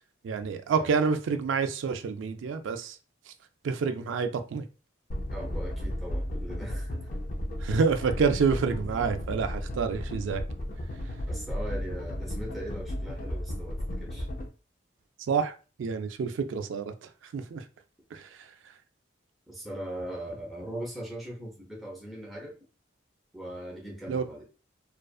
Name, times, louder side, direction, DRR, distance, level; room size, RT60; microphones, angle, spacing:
voice 1, 0.2-3.0 3.6-4.6 7.6-10.4 15.3-15.5 15.8-16.9 17.3-17.6 18.1-18.2 24.1-24.2, right 5 dB, 80° right, 0.3 m, -28 dB
sound 1, 5.1-14.5, left 1 dB, 45° left, 0.4 m, -34 dB
voice 2, 5.3-7.0 8.1-8.3 11.3-14.3 19.5-22.6 23.3-24.4, right 1 dB, ahead, 0.6 m, -40 dB
2.4 x 2.4 x 2.3 m
head